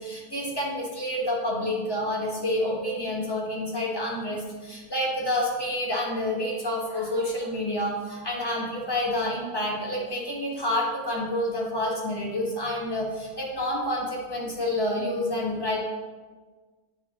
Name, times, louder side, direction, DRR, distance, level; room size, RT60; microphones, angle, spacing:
voice 1, 0.0-15.8, left 1 dB, 15° left, -4 dB, 0.9 m, -28 dB
7.9 x 3.4 x 3.6 m, 1.4 s
omnidirectional pair, 1.8 m